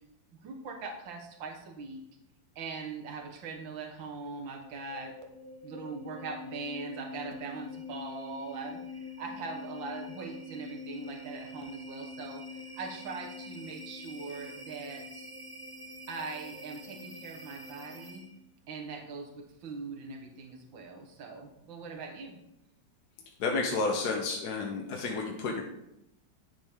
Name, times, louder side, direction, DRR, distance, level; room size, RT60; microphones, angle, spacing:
voice 1, 0.4-2.0 2.6-5.2 5.6-12.4 12.7-15.3 16.1-18.2 18.7-22.4, right 4 dB, 80° right, 2 dB, 2.0 m, -41 dB
sound 1, 4.5-18.5, left 2 dB, 35° right, 0.4 m, -45 dB
voice 2, 23.4-25.6, left 3 dB, 60° left, 0 dB, 1.5 m, -31 dB
9.9 x 7.3 x 3.6 m, 0.83 s
omnidirectional pair, 2.1 m